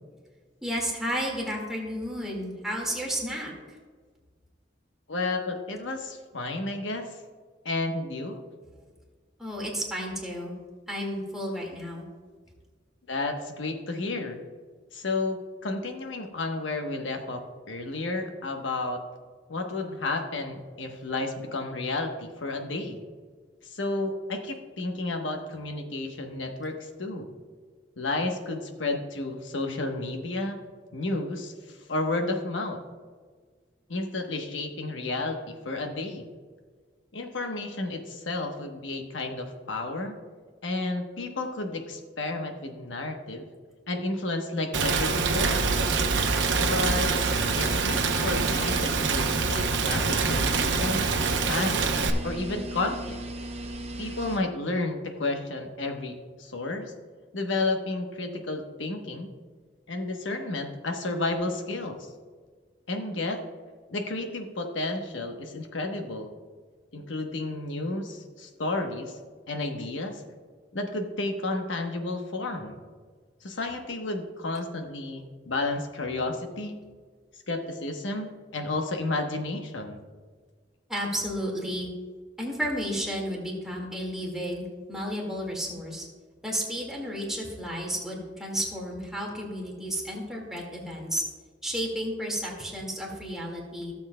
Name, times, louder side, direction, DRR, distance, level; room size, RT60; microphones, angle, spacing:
voice 1, 0.6-3.8 9.4-10.5 10.9-12.1 80.9-81.9 82.4-86.1 86.4-91.2 91.6-93.9, equal, ahead, -3 dB, 1.9 m, -32 dB
voice 2, 5.1-7.1 7.6-8.4 13.1-14.4 14.9-17.4 17.7-19.0 19.5-23.0 23.6-27.3 28.0-30.6 30.9-32.8 33.9-36.3 37.1-40.2 40.6-43.5 43.9-45.7 46.6-47.1 47.6-51.0 51.5-51.9 52.2-53.2 54.0-56.9 57.3-59.3 59.9-62.0 62.9-63.4 63.9-66.3 66.9-69.2 69.5-70.2 70.7-72.8 73.4-76.8 77.5-80.0, left 2 dB, 90° left, 4 dB, 1.1 m, -31 dB
Rain, 44.7-52.1, right 4 dB, 75° right, 0.8 m, -25 dB
sound 1, 45.4-54.4, right 1 dB, 35° right, 0.8 m, -38 dB
16.0 x 7.2 x 2.2 m, 1.5 s
head